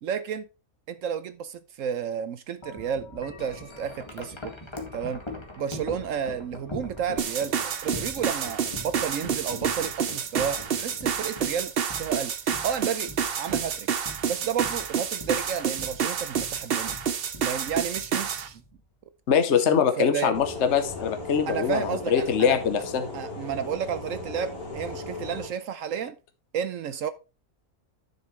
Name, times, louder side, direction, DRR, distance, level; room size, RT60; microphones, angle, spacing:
voice 1, 0.0-0.5 0.9-4.4 4.9-5.2 5.6-11.7 12.0-12.3 12.6-13.9 14.3-17.0 17.4-18.6 19.5-20.3 21.5-22.6 23.1-26.2 26.5-27.1, right 8 dB, 70° right, 1.0 m, -31 dB
Wind chime, 2.6-18.8, left 1 dB, 20° left, 2.0 m, -42 dB
sound 1, 7.2-18.5, right 7 dB, 50° right, 0.8 m, -29 dB
voice 2, 19.3-23.0, left 7 dB, 55° left, 1.2 m, -23 dB
sound 2, 20.3-25.5, left 2 dB, 80° left, 3.1 m, -37 dB
11.0 x 6.8 x 3.2 m
omnidirectional pair, 1.6 m